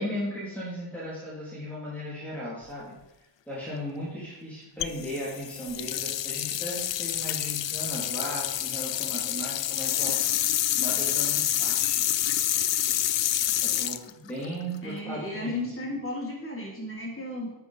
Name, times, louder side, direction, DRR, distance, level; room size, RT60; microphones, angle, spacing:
voice 1, 0.0-3.0 3.5-10.2 10.7-12.1 13.6-15.7, equal, 5° left, -9 dB, 3.1 m, -36 dB
sound 1, 4.8-15.0, left 12 dB, 65° left, 0.6 m, -28 dB
voice 2, 14.8-17.5, left 2 dB, 25° left, -3 dB, 3.6 m, -34 dB
12.0 x 6.9 x 5.0 m, 0.95 s
wide cardioid pair, 165°, 47 cm